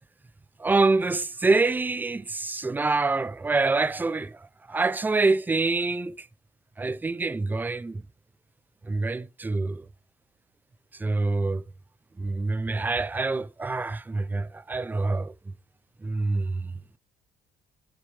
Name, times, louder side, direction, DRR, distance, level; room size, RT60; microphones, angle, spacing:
voice 1, 0.6-6.3 6.8-8.0 8.8-9.9 10.9-11.6 12.2-15.5 16.0-16.8, right 3 dB, 10° right, 0.4 m, -26 dB
6.7 x 6.6 x 3.3 m
cardioid pair, 110°, 17 cm